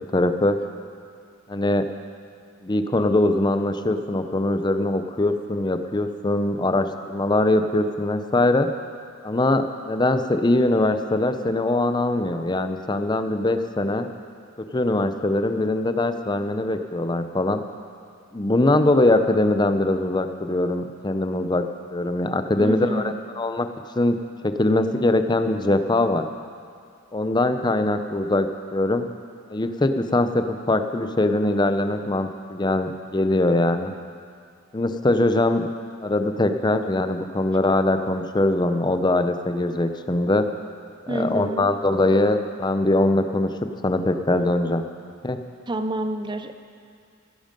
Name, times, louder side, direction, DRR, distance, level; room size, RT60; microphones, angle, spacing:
voice 1, 0.1-0.6 1.5-1.8 2.6-8.7 9.2-14.1 14.7-17.6 18.3-23.7 24.0-24.2 24.4-26.2 27.1-29.1 29.5-33.9 34.7-35.7 36.0-40.4 41.1-43.5 43.8-44.8 45.2-45.4, left 2 dB, 20° left, 8 dB, 0.6 m, -22 dB
voice 2, 22.6-23.1 41.1-41.7 45.7-46.5, right 1 dB, 20° right, 8 dB, 0.6 m, -28 dB
16.5 x 10.5 x 5.2 m, 2.3 s
head